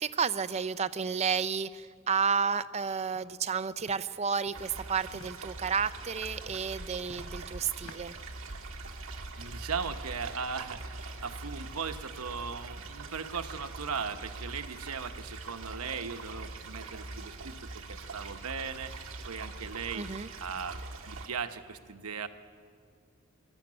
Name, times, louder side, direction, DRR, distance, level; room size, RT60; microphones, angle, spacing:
voice 1, 0.0-8.1 20.0-20.3, right 6 dB, 30° right, 13 dB, 0.5 m, -31 dB
Walk footsteps, 3.1-3.3 3.8-4.0 4.4-4.6 5.1-5.3 5.8-6.0 6.5-6.6 7.1-7.3 7.8-8.0, left 3 dB, 65° left, 1.0 m, -50 dB
sound 1, 4.5-21.3, right 3 dB, 60° right, 1.7 m, -43 dB
voice 2, 9.4-22.3, right 6 dB, 85° right, 8 dB, 1.0 m, -38 dB
21.5 x 13.0 x 9.7 m, 2.1 s
head